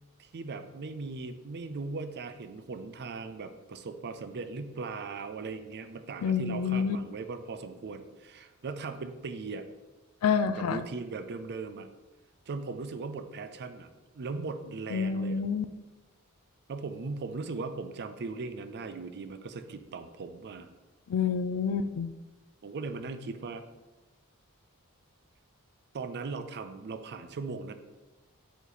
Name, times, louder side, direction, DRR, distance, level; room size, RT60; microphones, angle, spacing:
voice 1, 0.2-9.7 10.5-11.9 12.5-15.4 16.7-20.7 22.6-23.6 25.9-27.7, right 4 dB, 50° right, 9 dB, 0.4 m, -38 dB
voice 2, 6.2-7.0 10.2-10.8 14.9-15.7 21.1-22.1, left 6 dB, 70° left, 13 dB, 0.4 m, -28 dB
8.0 x 3.1 x 4.0 m, 1.1 s
head